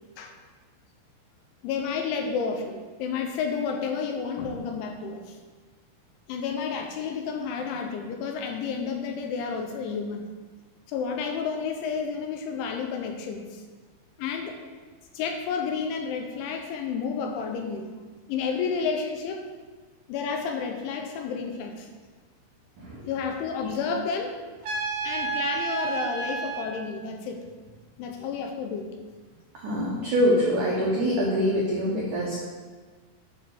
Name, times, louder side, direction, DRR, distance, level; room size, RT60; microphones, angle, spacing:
voice 1, 1.6-5.4 6.3-10.2 10.9-13.6 14.2-14.6 15.1-17.9 18.3-19.5 20.1-21.9 23.0-24.4 25.0-27.5 28.0-29.0, left 5 dB, 75° left, 4 dB, 3.0 m, -31 dB
Trumpet, 24.6-26.7, right 4 dB, 70° right, 2.1 m, -30 dB
voice 2, 29.5-32.3, equal, 85° right, -4 dB, 1.7 m, -24 dB
9.5 x 5.5 x 6.7 m, 1.4 s
omnidirectional pair, 5.9 m